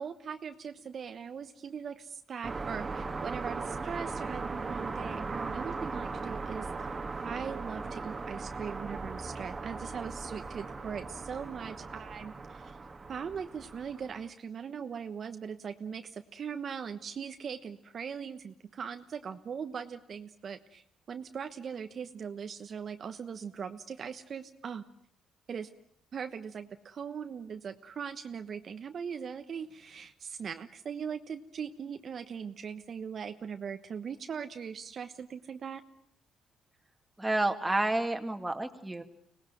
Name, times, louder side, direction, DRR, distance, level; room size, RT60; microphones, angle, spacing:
voice 1, 0.0-6.9 7.2-12.8 13.1-24.8 25.5-25.7 26.1-35.8, right 7 dB, 50° right, 7 dB, 1.1 m, -40 dB
sound 1, 2.4-14.3, right 3 dB, 30° right, 1.8 m, -38 dB
voice 2, 37.2-39.0, right 2 dB, 10° right, 6 dB, 2.2 m, -30 dB
25.0 x 18.5 x 9.1 m, 0.67 s
cardioid pair, 90°, 0 cm